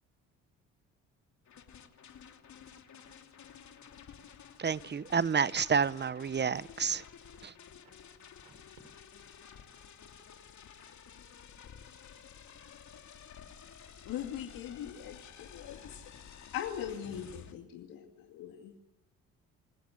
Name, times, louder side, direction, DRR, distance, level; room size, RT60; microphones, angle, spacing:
sound 1, 1.5-17.5, left 7 dB, 55° left, 3.0 m, -52 dB
voice 1, 4.6-7.0 7.4-7.5, right 6 dB, 30° right, 0.9 m, -29 dB
voice 2, 7.8-8.5 9.1-9.2 10.7-10.9 11.7-13.1 18.5-18.8, right 7 dB, 70° right, 5.2 m, -71 dB
voice 3, 14.1-16.0 16.5-18.7, left 10 dB, 75° left, 2.5 m, -41 dB
27.0 x 16.0 x 9.9 m
supercardioid pair, 55°, 33 cm